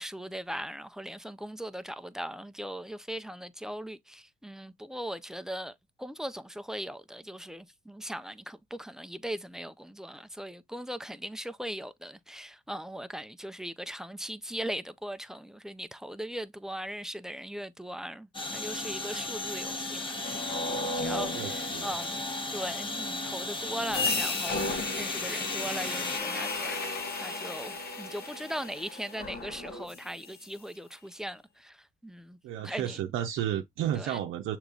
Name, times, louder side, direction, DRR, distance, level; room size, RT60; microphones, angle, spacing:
voice 1, 0.0-20.5 20.8-22.2 22.5-33.0 33.9-34.2, equal, 5° right, 0.4 m, -39 dB
sound 1, 18.3-26.2, left 2 dB, 25° left, 1.0 m, -35 dB
sound 2, 20.2-30.3, left 3 dB, 50° left, 1.2 m, -35 dB
voice 2, 21.3-21.9 32.4-34.6, right 10 dB, 85° right, 0.6 m, -32 dB
6.6 x 3.0 x 2.4 m
cardioid pair, 90°, 20 cm